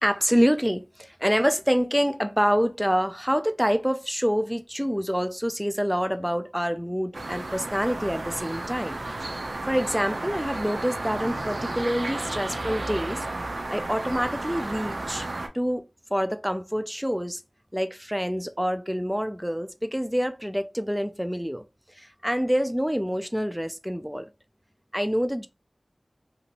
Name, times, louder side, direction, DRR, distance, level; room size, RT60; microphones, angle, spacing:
voice 1, 0.0-9.0 9.7-15.3 15.5-15.8 16.1-17.4 17.7-21.6 22.0-24.3 24.9-25.5, equal, 5° right, 0.3 m, -26 dB
sound 1, 7.1-15.5, right 2 dB, 80° right, 0.5 m, -33 dB
2.8 x 2.5 x 2.9 m
wide cardioid pair, 40°, 0 cm